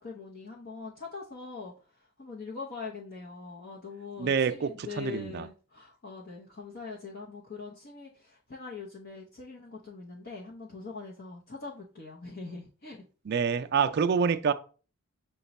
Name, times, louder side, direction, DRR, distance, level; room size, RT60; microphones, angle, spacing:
voice 1, 0.0-13.0, left 4 dB, 50° left, 0.7 m, -43 dB
voice 2, 4.2-5.5 13.3-14.5, right 6 dB, 50° right, 0.3 m, -27 dB
5.8 x 2.2 x 4.0 m
head